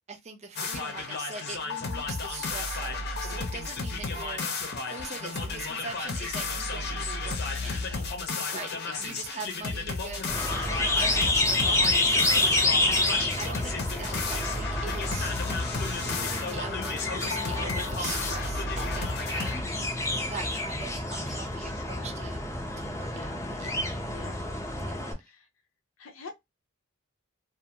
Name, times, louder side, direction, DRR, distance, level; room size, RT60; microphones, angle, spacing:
voice 1, 0.1-4.5 4.9-8.1 8.5-8.7 9.0-12.2 12.8-15.3 16.0-19.6 20.3-22.4 22.8-23.1 23.6-23.7, right 4 dB, 35° right, 0.5 m, -42 dB
sound 1, 0.6-19.6, left 3 dB, 55° left, 0.7 m, -33 dB
voice 2, 8.8-9.3 10.5-10.7 19.6-20.0 21.5-22.1 23.1-23.4 24.1-24.4 25.2-25.5 26.0-26.3, left 4 dB, 90° left, 0.7 m, -46 dB
sound 2, 10.3-25.1, left 2 dB, 15° left, 0.7 m, -29 dB
2.5 x 2.5 x 2.8 m
head